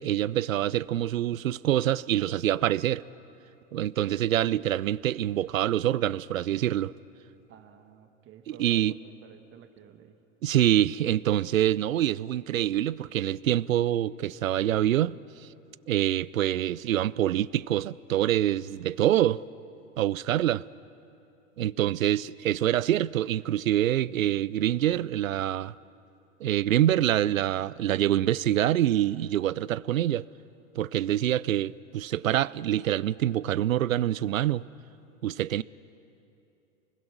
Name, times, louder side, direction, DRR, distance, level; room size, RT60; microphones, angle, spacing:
voice 1, 0.0-3.0 3.7-6.9 8.6-8.9 10.4-15.2 15.9-19.4 20.0-20.6 21.6-25.7 26.4-30.2 30.8-34.6 35.2-35.6, right 12 dB, 85° right, 0.6 m, -25 dB
voice 2, 7.5-10.2, right 8 dB, 30° right, 1.4 m, -52 dB
27.0 x 21.0 x 6.1 m
hypercardioid pair, 105°, 39 cm